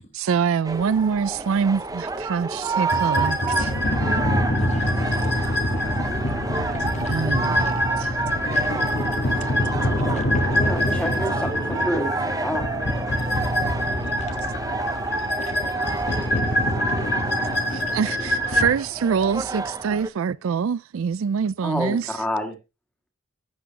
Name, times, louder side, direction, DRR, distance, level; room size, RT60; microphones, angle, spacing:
voice 1, 0.0-3.7 6.7-6.8 7.1-8.2 9.3-9.8 17.7-22.2, right 6 dB, 70° right, 0.4 m, -25 dB
sound 1, 0.6-20.1, right 3 dB, 15° right, 0.6 m, -30 dB
sound 2, 2.9-18.7, left 1 dB, 50° left, 1.3 m, -24 dB
voice 2, 4.6-5.0 5.5-6.2 6.6-6.7 6.9-7.1 8.5-8.8 10.1-10.3 14.0-14.6 14.9-15.0 15.4-15.5 17.0-17.1, left 3 dB, 30° left, 1.1 m, -47 dB
voice 3, 10.5-12.6 21.6-22.6, equal, 5° left, 1.8 m, -28 dB
11.0 x 8.4 x 2.9 m
head